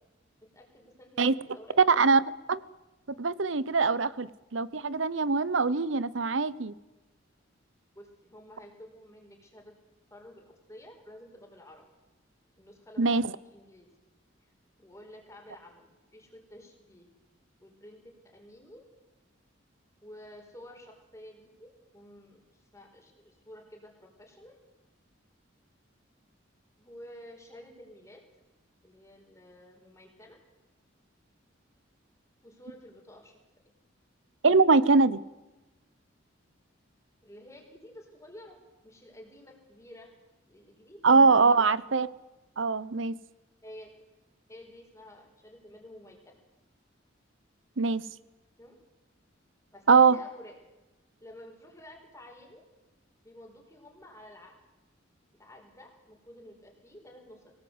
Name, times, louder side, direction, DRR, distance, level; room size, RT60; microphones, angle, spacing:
voice 1, 0.4-2.0 7.9-9.7 10.1-11.8 12.6-13.9 14.8-17.1 17.6-18.8 20.0-24.6 26.8-28.2 28.8-30.4 32.4-33.4 37.2-38.6 38.8-40.1 40.5-41.1 41.4-41.6 43.6-43.9 44.5-46.4 48.6-48.8 49.7-50.6 51.2-52.6 53.2-54.5 55.4-57.5, left 1 dB, 15° left, 1 dB, 4.4 m, -51 dB
voice 2, 1.8-2.2 2.5-2.6 3.2-6.7 13.0-13.3 34.4-35.2 41.0-42.1 42.6-43.2 47.8-48.0 49.9-50.2, right 4 dB, 75° right, 19 dB, 0.9 m, -22 dB
23.0 x 19.0 x 8.0 m, 1.1 s
head